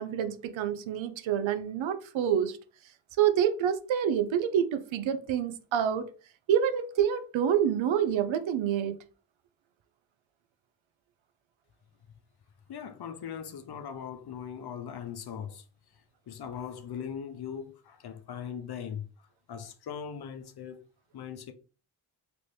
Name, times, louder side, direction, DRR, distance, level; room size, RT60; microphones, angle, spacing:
voice 1, 0.0-2.6 3.2-6.1 6.5-9.0, right 9 dB, 70° right, 0.6 m, -27 dB
voice 2, 12.7-15.6 16.3-19.1 19.5-20.8 21.1-21.5, left 8 dB, 55° left, 0.6 m, -39 dB
3.1 x 2.6 x 3.2 m
cardioid pair, 55°, 48 cm